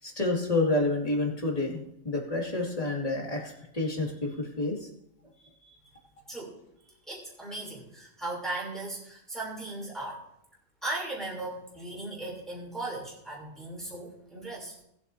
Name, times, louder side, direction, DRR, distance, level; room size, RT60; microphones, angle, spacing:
voice 1, 0.0-4.9 5.4-5.7, left 2 dB, 30° left, -1 dB, 2.4 m, -29 dB
voice 2, 6.3-10.3 10.8-14.7, right 2 dB, ahead, -5 dB, 3.2 m, -37 dB
19.5 x 8.0 x 2.7 m, 0.78 s
omnidirectional pair, 1.3 m